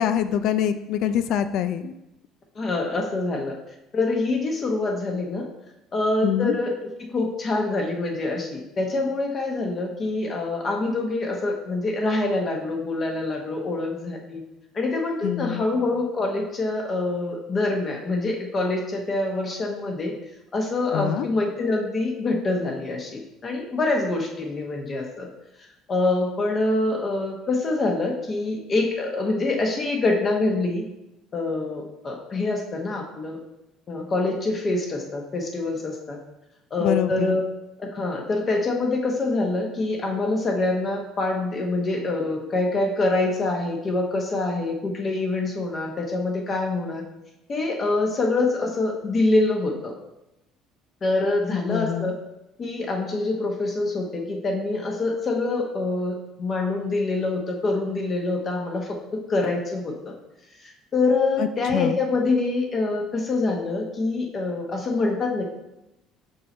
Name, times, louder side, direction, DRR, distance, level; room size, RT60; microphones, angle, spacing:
voice 1, 0.0-1.9 6.2-6.6 15.2-15.6 20.9-21.3 36.8-37.4 51.7-52.1 61.4-61.5 61.7-62.0, left 10 dB, 65° left, 11 dB, 0.3 m, -25 dB
voice 2, 2.5-3.5 3.9-5.4 5.9-6.7 7.1-14.4 14.7-20.1 20.5-25.3 25.9-30.8 31.3-33.4 33.9-36.2 36.7-37.4 37.8-47.0 47.5-49.9 51.0-52.1 52.6-60.1 60.6-65.4, left 2 dB, 30° left, 1 dB, 1.0 m, -25 dB
5.4 x 5.4 x 4.3 m, 0.91 s
cardioid pair, 140°, 0 cm